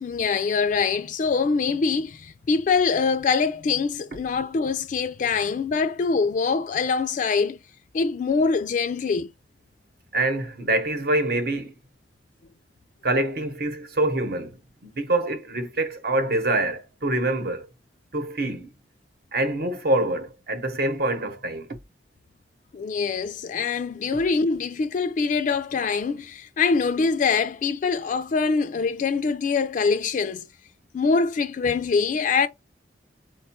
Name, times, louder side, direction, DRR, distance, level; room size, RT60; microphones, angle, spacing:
voice 1, 0.0-7.6 7.9-9.3 22.7-30.5 30.9-32.5, left 5 dB, 45° left, 0.3 m, -24 dB
voice 2, 10.1-11.7 13.0-17.7 18.1-18.7 19.3-21.8, right 2 dB, 60° right, 0.9 m, -25 dB
4.4 x 2.3 x 4.3 m
head